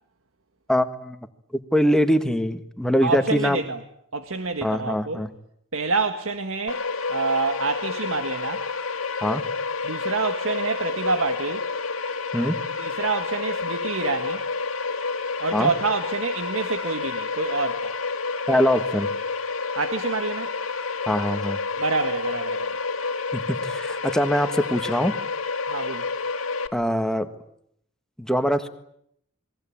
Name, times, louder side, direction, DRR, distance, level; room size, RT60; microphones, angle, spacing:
voice 1, 0.7-1.2 1.7-3.6 4.6-5.3 9.2-9.4 12.3-12.6 15.5-15.7 18.5-19.1 21.1-21.6 23.3-25.1 26.7-27.3 28.2-28.7, equal, 5° left, 8 dB, 1.6 m, -23 dB
voice 2, 3.0-3.8 4.1-5.2 5.7-8.7 9.8-11.7 12.8-14.5 15.4-18.0 19.8-20.5 21.8-22.8 25.7-26.1, right 4 dB, 85° right, 8 dB, 1.8 m, -27 dB
sound 1, 6.7-26.7, left 4 dB, 90° left, 2.3 m, -29 dB
28.5 x 22.5 x 8.8 m, 0.72 s
head